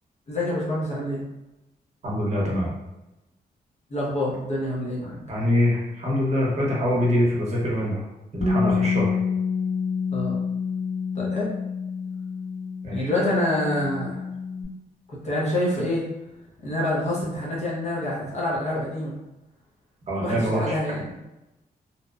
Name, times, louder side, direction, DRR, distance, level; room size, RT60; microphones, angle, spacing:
voice 1, 0.3-1.2 3.9-5.2 10.1-10.4 11.1-11.5 12.9-14.2 15.2-16.1 16.6-19.1 20.2-21.1, left 1 dB, 45° left, -5 dB, 0.6 m, -27 dB
voice 2, 2.0-2.7 5.3-8.0 8.3-9.2 12.8-13.1 20.1-20.7, left 1 dB, 40° right, -4 dB, 0.8 m, -24 dB
Bass guitar, 8.4-14.7, left 5 dB, 70° left, 1.2 m, -28 dB
2.7 x 2.0 x 2.3 m, 0.96 s
wide cardioid pair, 155°, 16 cm